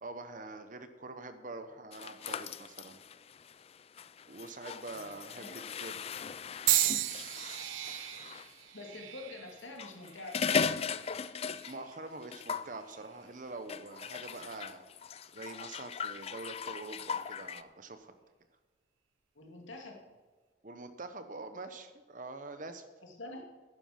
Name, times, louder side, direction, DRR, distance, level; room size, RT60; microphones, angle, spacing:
voice 1, 0.0-3.0 4.3-6.1 11.7-14.8 15.3-18.1 20.6-22.9, right 2 dB, 45° right, 9 dB, 1.0 m, -45 dB
sound 1, 1.9-8.5 9.6-12.0 12.2-12.7 13.7-17.6, left 6 dB, 30° left, 0.3 m, -38 dB
voice 2, 4.9-5.6 8.7-10.7 19.3-20.0 23.0-23.4, left 2 dB, 85° left, 1 dB, 2.4 m, -47 dB
sound 2, 6.7-10.8 11.5-11.9 12.9-13.1, right 14 dB, 85° right, 0.5 m, -34 dB
11.0 x 10.0 x 5.9 m, 1.3 s
head